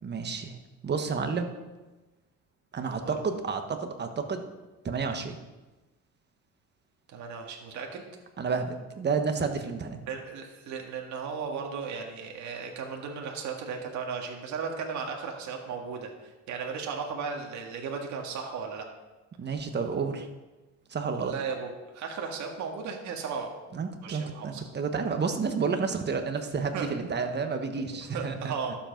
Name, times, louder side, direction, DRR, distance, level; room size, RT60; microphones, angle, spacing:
voice 1, 0.0-0.6 0.8-1.5 2.7-4.4 4.8-5.4 8.4-10.0 19.4-20.3 20.9-21.3 23.7-28.5, right 5 dB, 35° right, 6 dB, 1.3 m, -30 dB
voice 2, 7.1-8.0 10.1-18.9 21.2-23.5 24.0-24.6 26.7-26.9 27.8-27.9 28.1-28.8, right 5 dB, 65° right, 1 dB, 1.9 m, -36 dB
12.0 x 7.7 x 5.2 m, 1.1 s
cardioid pair, 115°, 32 cm